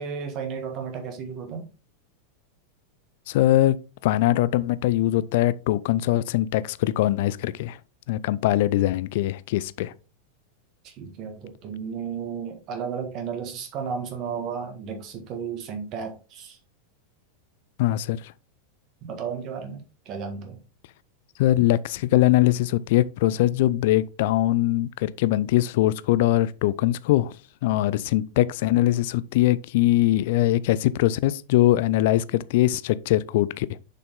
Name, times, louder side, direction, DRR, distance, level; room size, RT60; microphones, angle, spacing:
voice 1, 0.0-1.7 10.8-16.6 19.0-20.6, right 6 dB, 35° right, 1.8 m, -33 dB
voice 2, 3.3-3.8 4.0-7.8 8.1-9.9 17.8-18.3 21.4-27.3 27.6-33.7, left 15 dB, 50° left, 0.4 m, -22 dB
6.6 x 5.6 x 3.7 m
figure-of-eight pair, 90°, 0 cm